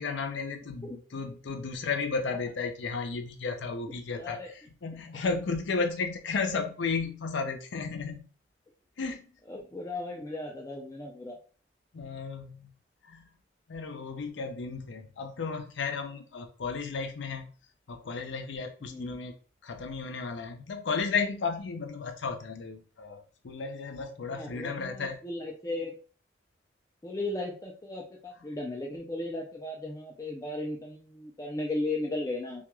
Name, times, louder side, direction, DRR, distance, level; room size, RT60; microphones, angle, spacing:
voice 1, 0.0-8.3 9.0-9.3 11.9-12.7 13.0-13.3 13.7-17.5 17.9-19.3 19.6-25.2, left 4 dB, 80° left, 5 dB, 0.5 m, -34 dB
voice 2, 4.1-4.5 9.5-11.4 18.8-19.2 24.3-25.9 27.0-32.7, left 2 dB, 15° left, -1 dB, 0.3 m, -36 dB
2.3 x 2.2 x 3.0 m, 0.38 s
head